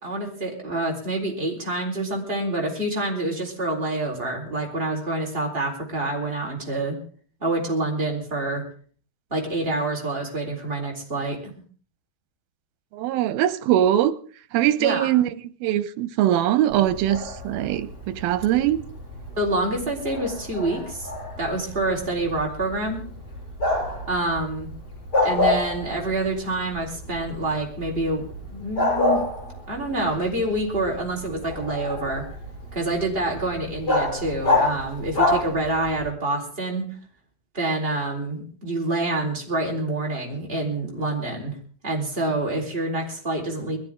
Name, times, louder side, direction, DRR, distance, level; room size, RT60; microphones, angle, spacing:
voice 1, 0.0-7.0 7.4-8.7 9.3-11.6 14.8-15.1 19.4-21.1 21.4-23.0 24.1-24.7 25.2-29.2 29.7-32.2 32.7-36.9 37.5-41.6 41.8-43.8, right 2 dB, 15° right, 4.0 m, -27 dB
voice 2, 12.9-14.2 14.5-15.3 15.6-18.8, right 12 dB, 90° right, 2.7 m, -22 dB
Bark, 16.7-36.1, left 2 dB, 25° left, 7.6 m, -29 dB
22.0 x 14.5 x 3.7 m
omnidirectional pair, 4.1 m